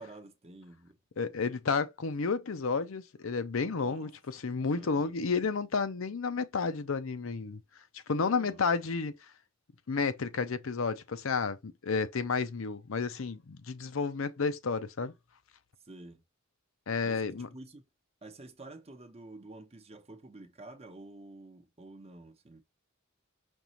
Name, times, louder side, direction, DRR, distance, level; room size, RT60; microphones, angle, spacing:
voice 1, 0.0-1.0 3.7-4.1 4.7-5.1 8.2-8.7 15.8-16.2 17.0-17.8 18.2-22.6, right 2 dB, 30° right, 0.8 m, -49 dB
voice 2, 1.2-7.6 7.9-9.1 9.9-15.1 16.9-17.5, left 4 dB, 70° left, 0.6 m, -31 dB
5.3 x 3.0 x 2.9 m
head